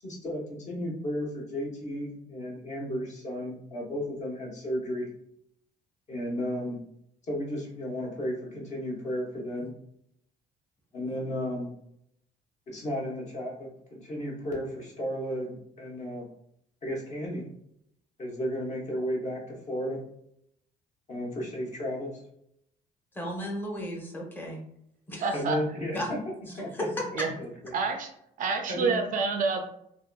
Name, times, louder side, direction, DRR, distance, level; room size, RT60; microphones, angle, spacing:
voice 1, 0.0-5.1 6.1-6.8 7.3-9.7 10.9-11.7 12.7-16.3 16.8-17.5 18.2-20.0 21.1-22.2 25.3-26.2 26.5-26.9 27.4-27.7 28.7-29.0, equal, 45° left, -2 dB, 0.8 m, -33 dB
voice 2, 23.1-24.6 25.1-25.4 25.9-26.1 26.7-27.3, equal, 10° left, -1 dB, 0.7 m, -34 dB
voice 3, 25.2-25.6 27.2-27.3 27.7-28.1 28.4-29.6, right 4 dB, 50° right, 5 dB, 0.4 m, -28 dB
2.6 x 2.4 x 2.2 m, 0.73 s
cardioid pair, 110°, 17 cm